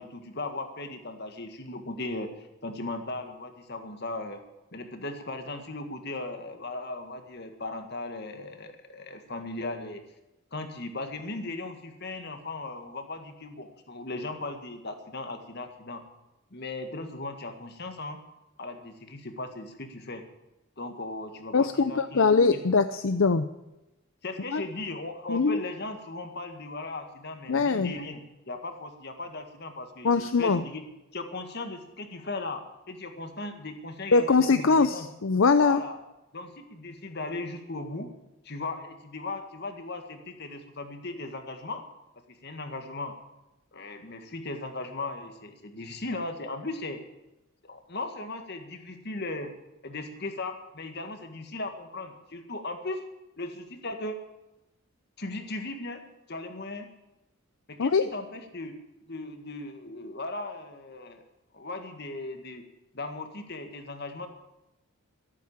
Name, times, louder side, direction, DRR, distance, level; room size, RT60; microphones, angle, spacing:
voice 1, 0.0-4.4 4.7-10.0 10.5-16.0 16.5-18.2 18.6-20.3 20.8-22.8 24.2-30.8 31.1-35.1 35.6-36.0 36.3-38.1 38.4-41.8 42.3-43.2 43.7-47.0 47.6-49.5 49.8-53.0 53.4-54.2 55.2-56.0 56.3-56.9 57.7-58.7 59.1-61.2 61.5-62.6 62.9-64.3, left 2 dB, 50° left, 6 dB, 1.9 m, -37 dB
voice 2, 21.5-23.5 24.5-24.6 25.3-25.6 27.5-27.9 30.0-30.6 34.1-35.8 57.8-58.0, left 4 dB, 70° left, 11 dB, 0.6 m, -22 dB
13.0 x 13.0 x 7.2 m, 0.95 s
head